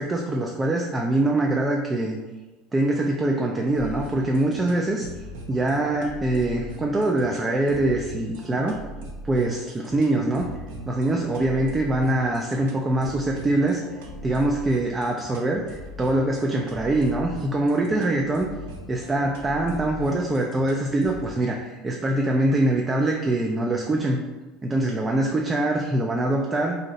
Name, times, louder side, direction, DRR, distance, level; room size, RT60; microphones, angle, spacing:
voice 1, 0.0-2.2 2.7-5.1 5.5-8.8 9.2-10.5 10.9-13.8 14.2-18.5 18.9-24.2 24.6-26.8, right 1 dB, 20° right, 0 dB, 0.3 m, -23 dB
sound 1, 3.7-21.3, right 1 dB, 80° right, 0.5 m, -40 dB
2.6 x 2.0 x 3.9 m, 1.2 s
supercardioid pair, 105°, 0 cm